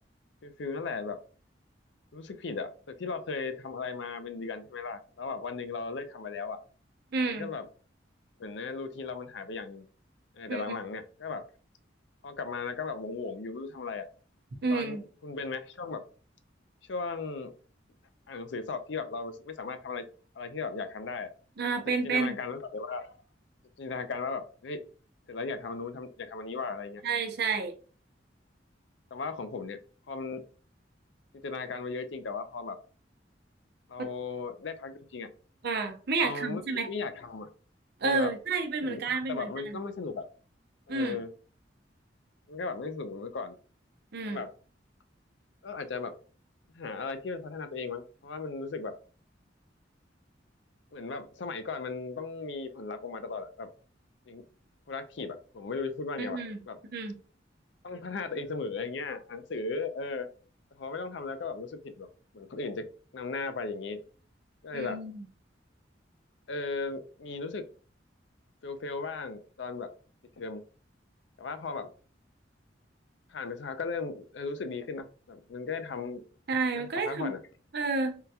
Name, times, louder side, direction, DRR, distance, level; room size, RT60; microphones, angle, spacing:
voice 1, 0.4-1.2 2.1-2.7 3.0-6.6 7.3-7.7 8.4-9.9 10.3-11.4 12.2-14.1 14.7-16.0 16.9-17.5 18.3-20.0 20.4-21.3 22.0-23.2 23.8-24.8 25.3-27.0 29.1-29.8 30.1-30.4 31.4-32.8 33.9-35.3 36.2-36.6 36.9-37.5 38.0-38.3 38.8-40.3 40.9-41.3 42.5-43.6 44.3-44.5 45.6-46.1 46.7-48.9 50.9-53.7 54.3-54.4 54.9-56.4 56.7-56.8 57.8-60.3 60.8-62.1 62.3-62.8 63.1-64.0 64.6-65.0 66.5-67.6 68.6-69.9 70.4-70.6 71.4-71.9 73.3-76.2 76.7-77.4, left 4 dB, 70° left, 0.5 m, -36 dB
voice 2, 7.1-7.5 10.5-10.7 14.6-15.0 21.6-22.4 27.0-27.7 34.0-34.1 35.6-36.9 38.0-39.8 40.9-41.2 44.1-44.4 56.2-56.6 56.9-57.2 64.7-65.2 76.5-77.3 77.7-78.2, right 4 dB, 60° right, 0.7 m, -30 dB
3.7 x 2.2 x 2.7 m
head